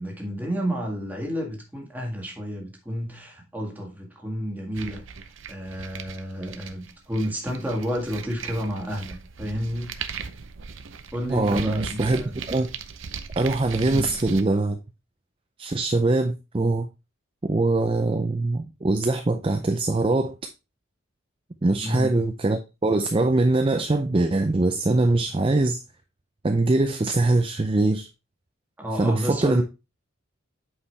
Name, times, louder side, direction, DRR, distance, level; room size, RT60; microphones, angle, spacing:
voice 1, 0.0-5.0 5.5-9.9 11.1-12.3 13.9-14.2 21.8-22.2 28.8-29.6, equal, 10° right, 1.7 m, -31 dB
sound 1, 4.7-14.4, right 6 dB, 70° right, 0.7 m, -38 dB
voice 2, 11.3-12.7 13.4-14.8 15.6-16.9 17.5-20.3 21.6-25.8 26.4-28.1 29.0-29.6, right 2 dB, 25° right, 0.5 m, -22 dB
8.3 x 4.9 x 3.3 m
head